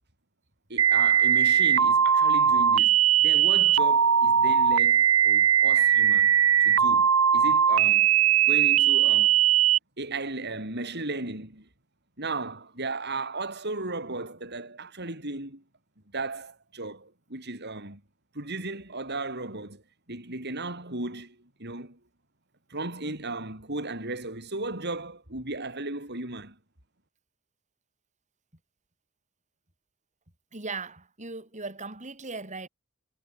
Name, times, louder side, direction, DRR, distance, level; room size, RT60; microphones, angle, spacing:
voice 1, 0.7-6.4 6.6-8.1 8.4-9.4 10.0-11.7 12.2-15.6 16.1-18.0 18.3-19.8 20.1-22.0 22.7-26.6, right 2 dB, 50° right, 7.9 m, -35 dB
sound 1, 0.8-9.8, right 8 dB, 85° right, 1.6 m, -20 dB
voice 2, 30.5-32.7, right 3 dB, 35° right, 6.6 m, -38 dB
head